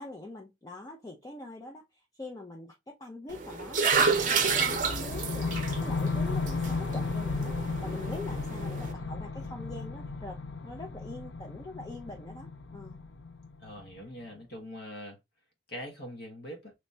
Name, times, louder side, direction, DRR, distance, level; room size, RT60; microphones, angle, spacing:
voice 1, 0.0-2.7 3.0-7.5 7.8-13.0, left 2 dB, 20° left, 0.5 m, -44 dB
sound 1, 3.3-8.9, right 5 dB, 45° right, 0.7 m, -30 dB
sound 2, 3.9-14.0, left 3 dB, 75° left, 0.5 m, -34 dB
voice 2, 13.6-15.2 15.7-16.7, equal, 60° left, 1.3 m, -42 dB
3.1 x 2.7 x 3.3 m
head